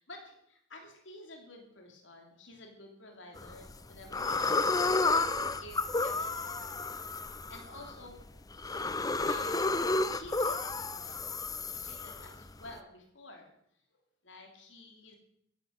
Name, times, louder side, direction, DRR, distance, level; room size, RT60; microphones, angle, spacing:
voice 1, 0.0-6.8 7.2-8.3 9.0-11.3 11.7-13.5 13.9-15.2, left 2 dB, 75° left, 2 dB, 2.9 m, -51 dB
sound 1, 3.4-3.8 4.1-12.7, left 3 dB, 20° left, 0.6 m, -31 dB
15.0 x 11.0 x 6.4 m, 0.72 s
head